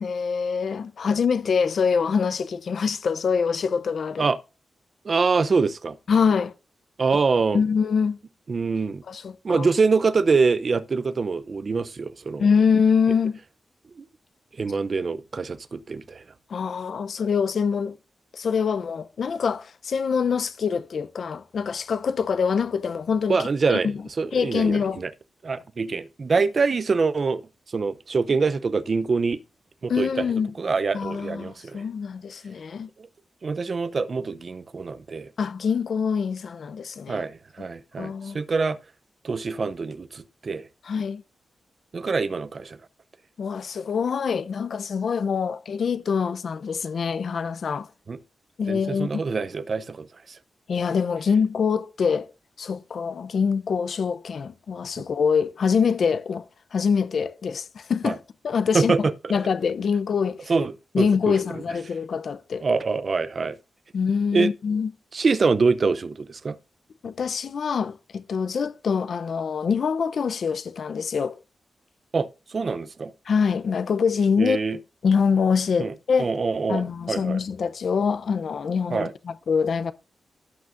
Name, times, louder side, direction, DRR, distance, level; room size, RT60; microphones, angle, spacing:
voice 1, 0.0-4.2 6.1-6.5 7.5-8.2 9.1-9.7 12.4-13.4 16.5-18.0 18.3-23.4 23.7-24.0 24.3-25.0 29.9-30.5 30.9-32.9 35.4-37.3 37.6-37.7 38.0-38.4 40.9-41.2 43.4-47.9 48.6-49.1 50.7-52.3 52.6-56.4 56.7-58.2 58.4-60.5 60.9-62.7 63.9-64.9 67.0-71.4 73.3-74.6 75.0-76.3 76.7-79.9, left 6 dB, 70° left, 0.6 m, -24 dB
voice 2, 5.0-6.0 7.0-7.6 8.5-9.0 9.4-12.5 14.0-14.1 14.6-16.2 23.3-23.9 24.2-25.1 25.4-27.4 27.7-29.4 29.8-30.3 30.6-31.8 33.0-33.1 33.4-35.3 37.1-38.8 39.2-40.7 41.9-42.8 48.1-48.2 48.7-50.4 55.0-55.1 58.0-58.2 58.7-59.4 60.5-61.3 62.6-63.6 64.3-64.5 65.1-66.6 72.1-73.1 74.4-74.8 75.8-75.9 76.2-77.4 78.9-79.1, right 4 dB, 50° right, 0.6 m, -25 dB
16.0 x 6.2 x 2.6 m
cardioid pair, 80°, 0 cm